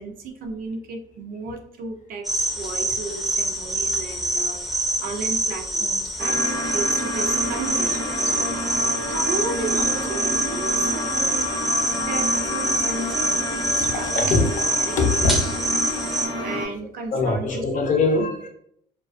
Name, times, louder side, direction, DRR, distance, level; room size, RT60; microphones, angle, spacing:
voice 1, 0.0-4.7 5.0-6.4 6.7-11.5 12.0-14.4 14.8-15.3 15.8-15.9 16.2-18.0, right 4 dB, 60° right, 4 dB, 0.4 m, -34 dB
sound 1, 2.2-16.3, right 1 dB, ahead, 0.4 m, -25 dB
sound 2, 6.2-16.6, left 1 dB, 85° right, 0.8 m, -29 dB
voice 2, 13.8-15.8 16.3-16.5 17.1-18.5, left 3 dB, 50° left, 3 dB, 0.6 m, -24 dB
2.4 x 2.3 x 2.4 m, 0.67 s
cardioid pair, 110°, 17 cm